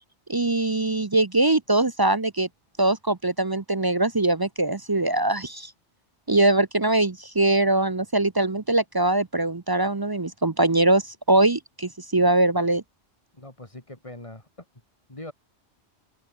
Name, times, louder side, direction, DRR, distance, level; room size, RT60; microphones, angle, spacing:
voice 1, 0.3-2.5 2.8-5.7 6.3-12.8, right 2 dB, 25° right, 0.5 m, -22 dB
voice 2, 13.3-14.5 15.1-15.3, left 1 dB, 30° left, 3.2 m, -41 dB
omnidirectional pair, 1.2 m